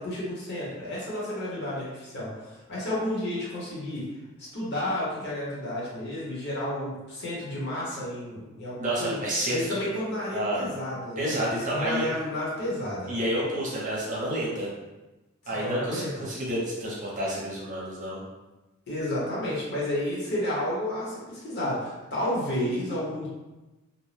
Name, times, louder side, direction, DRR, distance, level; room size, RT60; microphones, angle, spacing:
voice 1, 0.0-4.1 4.4-9.2 9.5-13.1 15.4-16.3 18.9-23.3, left 1 dB, 55° left, -6 dB, 1.0 m, -31 dB
voice 2, 8.8-9.8 10.3-10.7 11.2-12.0 13.1-14.7 15.5-18.2, right 1 dB, 35° right, -5 dB, 0.7 m, -29 dB
2.6 x 2.1 x 3.2 m, 1.1 s
head